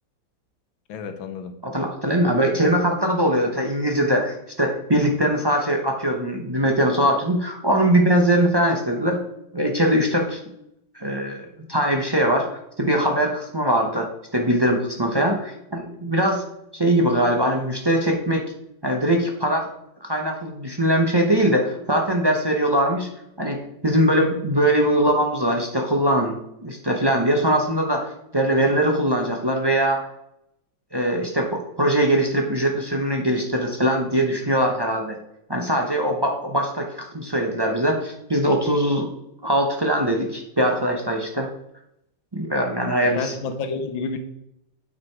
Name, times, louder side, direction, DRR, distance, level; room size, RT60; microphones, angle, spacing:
voice 1, 0.9-1.5 43.0-44.2, left 4 dB, 85° left, 8 dB, 1.6 m, -30 dB
voice 2, 1.6-9.2 9.5-10.6 10.9-12.5 12.8-16.4 16.7-18.4 18.8-19.7 20.0-23.1 23.4-23.6 23.8-26.4 26.6-30.1 30.9-35.2 35.5-39.1 39.4-41.5 42.3-43.3, right 1 dB, 35° right, 1 dB, 0.3 m, -21 dB
9.0 x 5.1 x 4.6 m, 0.79 s
omnidirectional pair, 2.1 m